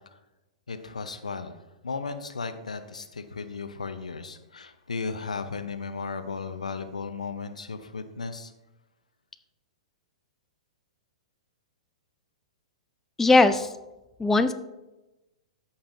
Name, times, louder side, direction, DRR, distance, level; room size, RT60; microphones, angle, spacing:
voice 1, 0.7-1.6 1.8-8.5, left 4 dB, 90° left, 10 dB, 0.7 m, -35 dB
voice 2, 13.2-13.7 14.2-14.5, left 3 dB, 10° left, 10 dB, 0.4 m, -19 dB
13.5 x 5.6 x 2.6 m, 1.0 s
hypercardioid pair, 115°, 4 cm